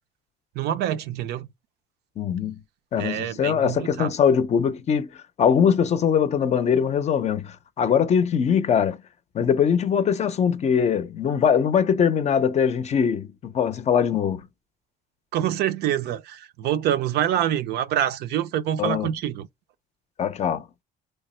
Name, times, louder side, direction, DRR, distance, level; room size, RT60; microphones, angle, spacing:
voice 1, 0.6-1.5 3.0-4.1 15.3-19.5, right 11 dB, 75° right, 0.5 m, -26 dB
voice 2, 2.2-2.6 2.9-9.0 9.3-14.5 18.8-19.1 20.2-20.7, left 7 dB, 40° left, 0.5 m, -22 dB
3.3 x 2.0 x 4.2 m
cardioid pair, 110°, 17 cm